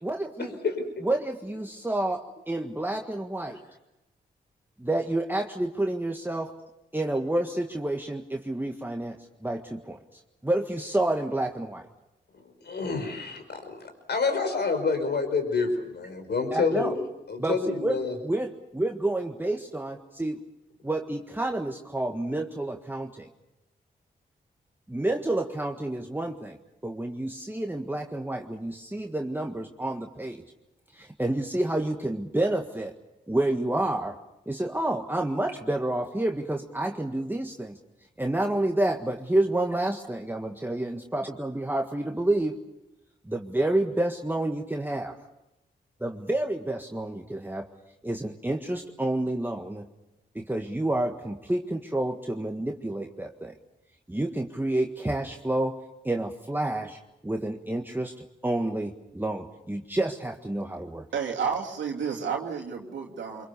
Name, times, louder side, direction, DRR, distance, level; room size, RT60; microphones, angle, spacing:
voice 1, 0.0-0.6 1.0-3.6 4.8-6.5 6.9-11.9 16.5-16.9 17.4-20.4 20.8-23.3 24.9-26.6 26.8-30.4 30.9-33.0 33.3-34.2 34.4-37.8 38.2-42.6 43.2-45.1 46.0-47.7 48.0-49.9 50.3-53.5 54.1-61.1, right 1 dB, 10° right, 3 dB, 1.7 m, -29 dB
voice 2, 0.6-1.0 12.6-15.7 16.0-18.1, left 4 dB, 65° left, 6 dB, 5.1 m, -28 dB
voice 3, 61.1-63.5, right 6 dB, 90° right, 1 dB, 2.6 m, -31 dB
25.0 x 23.0 x 6.9 m, 0.94 s
supercardioid pair, 45°, 19 cm